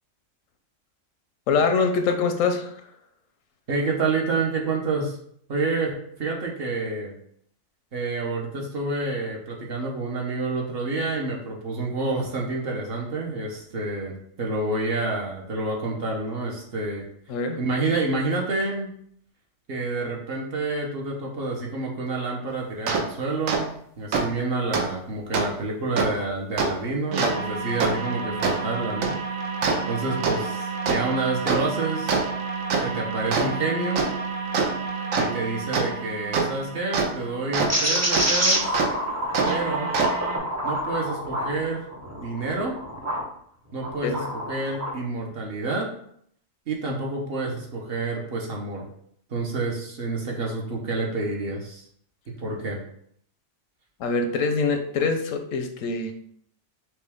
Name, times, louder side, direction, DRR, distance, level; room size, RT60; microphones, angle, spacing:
voice 1, 1.5-2.8 17.3-17.6 44.0-44.2 54.0-56.1, left 4 dB, 85° left, 6 dB, 1.0 m, -24 dB
voice 2, 3.7-5.2 5.5-7.1 7.9-17.0 17.6-18.9 19.7-29.2 29.9-32.2 32.8-34.1 35.2-38.8 39.4-39.9 40.6-42.8 43.7-45.9 46.7-48.8 49.3-51.9 52.4-52.8, right 3 dB, 55° right, -1 dB, 1.0 m, -28 dB
sound 1, 22.9-23.0 23.5-23.6 24.1-24.2 24.7-24.8 25.3-25.4 26.0-26.1 26.6-26.7 27.1-37.7 38.1-38.3 38.7-38.9 39.3-40.4, right 4 dB, 85° right, 1.1 m, -26 dB
sound 2, 37.7-43.3 43.8-45.0, equal, 20° right, 0.4 m, -27 dB
5.9 x 2.3 x 3.4 m, 0.67 s
omnidirectional pair, 1.3 m